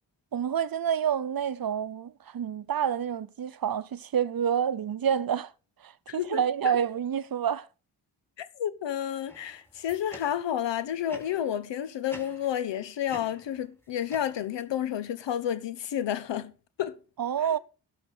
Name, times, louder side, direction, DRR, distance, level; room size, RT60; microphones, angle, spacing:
voice 1, 0.3-5.5 5.8-7.7 17.2-17.6, right 8 dB, 55° right, 0.8 m, -28 dB
voice 2, 6.1-6.8 8.4-16.5 16.8-17.0, left 10 dB, 90° left, 0.9 m, -31 dB
sound 1, 9.3-10.6 11.1-11.6 12.1-12.8 13.1-14.7, equal, 5° left, 2.8 m, -49 dB
12.0 x 5.6 x 6.2 m
cardioid pair, 40°, 42 cm